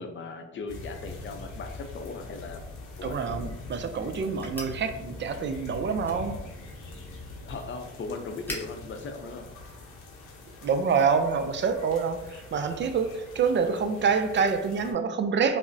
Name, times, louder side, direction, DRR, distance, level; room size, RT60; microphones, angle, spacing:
voice 1, 0.0-2.6 3.0-3.1 7.4-9.5, left 4 dB, 40° left, 5 dB, 0.5 m, -38 dB
sound 1, 0.7-14.9, left 2 dB, 85° left, 0.8 m, -43 dB
voice 2, 3.0-6.4 10.6-15.6, right 5 dB, 40° right, 8 dB, 0.4 m, -26 dB
sound 2, 4.4-10.2, left 1 dB, 5° left, 0.8 m, -47 dB
4.9 x 2.0 x 2.6 m, 0.99 s
cardioid pair, 90°, 30 cm